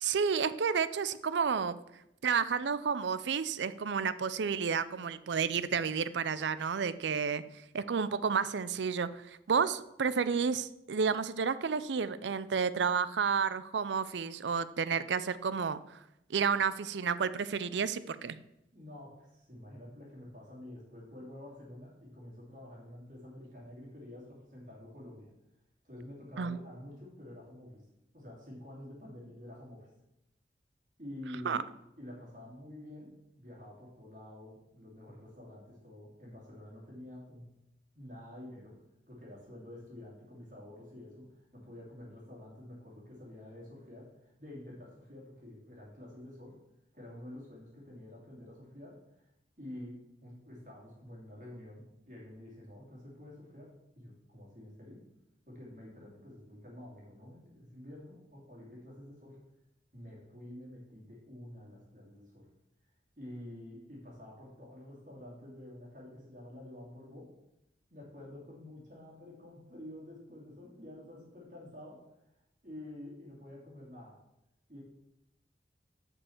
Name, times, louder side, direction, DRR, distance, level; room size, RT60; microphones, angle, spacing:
voice 1, 0.0-1.7 2.2-7.4 7.7-9.1 9.5-15.8 16.3-18.4 26.4-26.6 31.4-31.6, right 6 dB, 85° right, 15 dB, 0.5 m, -31 dB
voice 2, 18.7-25.3 25.8-27.9 28.1-29.9 31.0-31.7 32.0-37.4 37.9-38.8 39.1-46.6 46.9-49.2 49.6-55.1 55.5-59.4 59.9-62.5 63.2-67.3 67.9-72.4 72.6-74.2 74.7-74.8, left 1 dB, 45° right, -4 dB, 2.7 m, -49 dB
7.1 x 5.4 x 7.1 m, 0.84 s
head